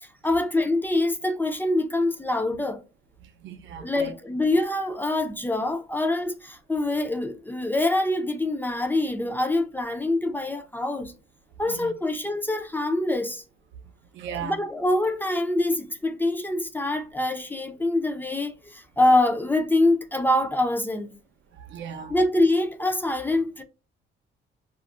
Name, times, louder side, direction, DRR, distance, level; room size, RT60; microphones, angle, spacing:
voice 1, 0.2-2.8 3.8-11.1 11.6-13.4 14.3-21.1 22.1-23.6, left 2 dB, 10° left, 0.4 m, -25 dB
voice 2, 3.2-4.1 11.7-11.9 14.1-14.6 21.6-22.1, right 8 dB, 75° right, 0.5 m, -37 dB
2.4 x 2.0 x 3.6 m
cardioid pair, 90°, 20 cm